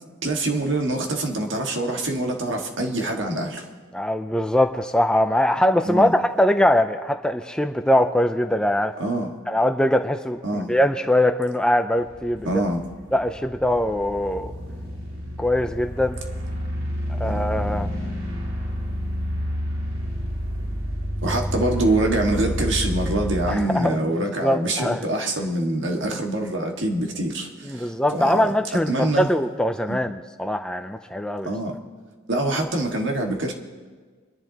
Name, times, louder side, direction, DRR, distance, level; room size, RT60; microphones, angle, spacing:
voice 1, 0.2-3.7 5.8-6.1 9.0-9.3 10.4-10.7 12.4-12.8 17.2-17.4 21.2-28.5 28.9-29.3 29.9-30.0 31.4-31.7 32.3-33.5, right 1 dB, 65° right, 1 dB, 1.8 m, -25 dB
voice 2, 3.9-8.9 9.5-12.5 13.1-14.5 15.4-16.2 17.1-17.9 23.5-24.0 24.4-25.1 27.6-31.5, left 1 dB, 5° left, 7 dB, 0.4 m, -22 dB
sound 1, 12.0-23.5, equal, 80° right, 2.3 m, -29 dB
29.0 x 11.0 x 2.9 m, 1.5 s
head